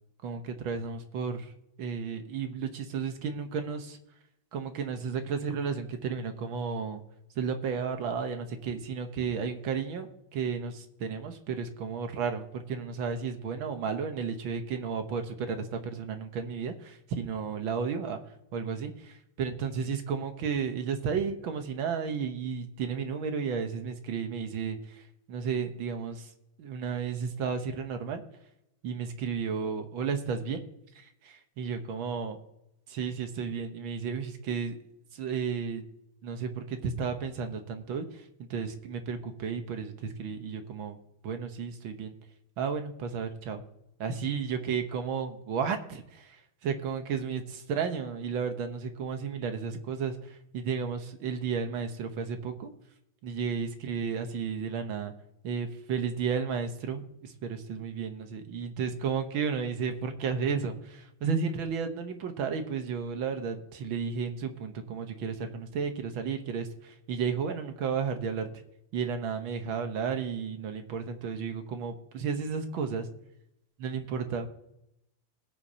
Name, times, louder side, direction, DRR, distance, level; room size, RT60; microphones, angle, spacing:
voice 1, 0.2-1.5 1.8-4.0 4.5-7.0 7.4-18.2 18.5-26.3 26.6-28.2 28.8-30.6 31.0-32.4 32.9-34.8 35.1-35.8 36.2-38.2 38.5-41.0 41.2-42.1 42.6-43.6 44.0-46.4 46.6-52.7 53.2-55.1 55.4-68.6 68.9-73.1 73.8-74.5, right 6 dB, 75° right, 7 dB, 1.8 m, -33 dB
20.0 x 8.2 x 2.8 m, 0.82 s
omnidirectional pair, 2.3 m